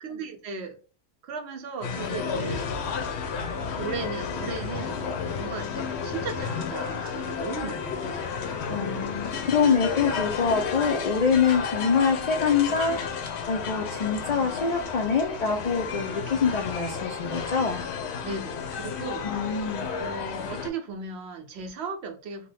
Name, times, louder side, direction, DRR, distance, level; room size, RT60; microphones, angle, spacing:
voice 1, 0.0-0.8 1.2-2.8 3.8-8.6 18.2-19.3 19.6-22.5, right 5 dB, 65° right, 4 dB, 0.8 m, -37 dB
sound 1, 1.8-20.7, left 6 dB, 65° left, 0.8 m, -32 dB
voice 2, 8.7-13.2 13.5-17.8 19.2-19.9, left 5 dB, 90° left, 2 dB, 0.3 m, -25 dB
2.8 x 2.2 x 3.2 m, 0.36 s
omnidirectional pair, 1.3 m